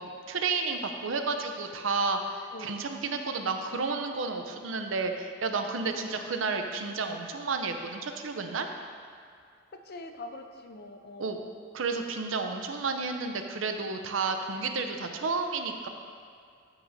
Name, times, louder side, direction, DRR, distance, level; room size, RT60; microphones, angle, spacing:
voice 1, 0.0-8.7 11.2-11.4 11.7-15.9, right 4 dB, 75° right, 5 dB, 0.6 m, -31 dB
voice 2, 5.9-6.3 9.7-11.4, left 2 dB, 55° left, 6 dB, 0.6 m, -44 dB
13.0 x 6.0 x 2.7 m, 2.3 s
head